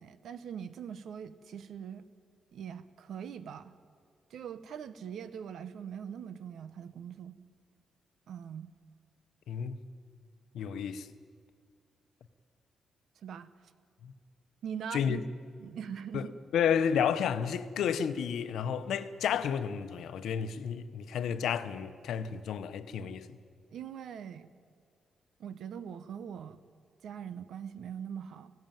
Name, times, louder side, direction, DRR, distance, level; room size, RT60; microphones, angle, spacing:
voice 1, 0.0-2.0 2.5-3.7 4.3-7.4 8.3-8.7 13.2-13.5 14.6-15.2 15.6-16.3 23.7-24.5 25.4-26.6 27.0-28.5, right 8 dB, 70° right, 0.9 m, -42 dB
voice 2, 9.5-9.8 10.5-11.1 14.0-14.1 14.9-15.2 16.1-16.3 16.5-23.3, left 8 dB, 90° left, 0.9 m, -31 dB
18.5 x 16.5 x 9.1 m
wide cardioid pair, 160°, 0 cm